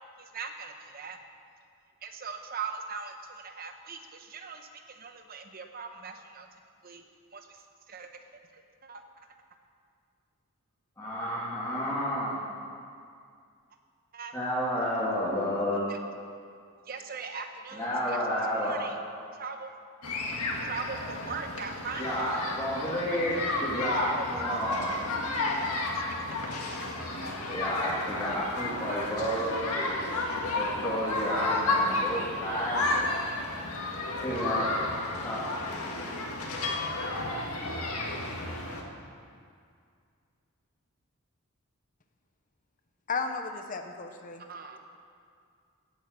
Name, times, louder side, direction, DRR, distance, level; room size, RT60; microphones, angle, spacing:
voice 1, 0.2-1.2 2.0-6.5 6.8-7.0 7.3-8.1 8.5-9.3 14.1-14.4 15.9-16.0 16.9-18.2 18.6-19.0 19.3-19.8 20.6-22.4 24.0-24.6 25.9-26.2 26.7-27.4 28.1-28.2 44.5-44.8, right 5 dB, 40° right, 6 dB, 1.0 m, -40 dB
voice 2, 11.0-12.4 14.3-15.9 17.7-18.9 22.0-24.9 27.5-29.5 30.5-32.9 34.2-34.8 35.2-35.5, equal, 15° left, -10 dB, 2.6 m, -31 dB
sound 1, 20.0-38.8, left 2 dB, 85° left, 1.9 m, -32 dB
voice 3, 43.1-44.4, left 4 dB, 35° left, 6 dB, 0.8 m, -34 dB
16.5 x 8.3 x 6.7 m, 2.3 s
head